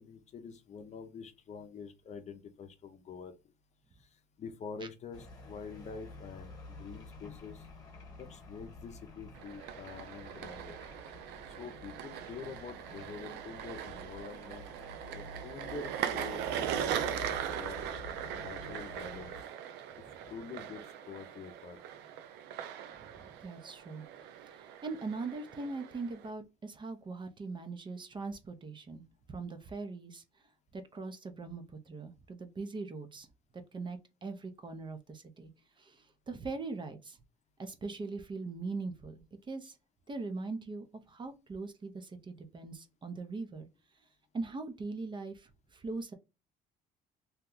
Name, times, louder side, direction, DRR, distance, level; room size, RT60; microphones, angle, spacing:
voice 1, 0.0-3.3 4.0-7.7 8.2-10.8 11.5-14.7 15.0-17.8 18.3-19.3 20.3-21.8, left 5 dB, 40° left, 0.6 m, -46 dB
sound 1, 5.1-19.4, left 2 dB, 25° left, 1.2 m, -50 dB
sound 2, 9.4-26.3, right 9 dB, 85° right, 0.5 m, -40 dB
voice 2, 23.0-24.0 24.5-29.0 29.3-30.2 30.7-33.3 33.7-35.5 35.8-37.2 37.6-39.8 40.1-43.7 44.3-46.1, right 3 dB, 30° right, 0.6 m, -41 dB
2.8 x 2.2 x 3.7 m
cardioid pair, 110°, 17 cm